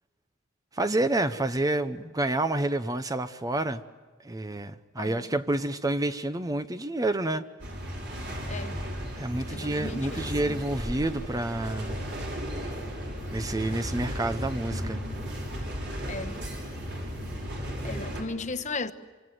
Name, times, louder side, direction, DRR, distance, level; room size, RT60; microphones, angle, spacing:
voice 1, 0.7-3.8 4.2-7.5 9.2-12.0 13.3-15.0, right 2 dB, 20° right, 0.7 m, -29 dB
voice 2, 5.0-5.3 8.5-8.8 9.5-10.6 16.0-16.4 17.8-18.9, left 3 dB, 35° left, 1.1 m, -36 dB
sound 1, 7.6-18.2, equal, 60° right, 6.3 m, -35 dB
26.0 x 25.0 x 7.9 m
head